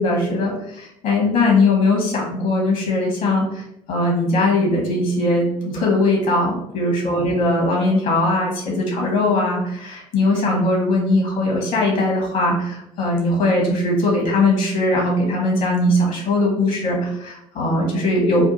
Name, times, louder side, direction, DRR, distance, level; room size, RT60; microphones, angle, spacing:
voice 1, 0.0-18.5, left 2 dB, 50° left, -1 dB, 1.5 m, -20 dB
3.4 x 2.5 x 4.0 m, 0.77 s
figure-of-eight pair, 60°, 17 cm